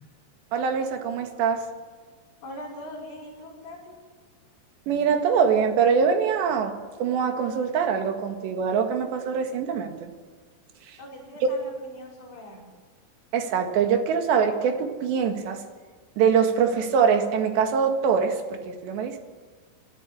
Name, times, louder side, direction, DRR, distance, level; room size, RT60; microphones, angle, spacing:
voice 1, 0.5-1.6 4.9-10.1 10.9-11.0 13.3-15.6 16.2-19.2, right 6 dB, 75° right, 5 dB, 3.9 m, -23 dB
voice 2, 2.4-4.0 11.0-12.7, left 1 dB, 65° left, -9 dB, 7.2 m, -41 dB
24.5 x 14.0 x 8.5 m, 1.5 s
omnidirectional pair, 5.1 m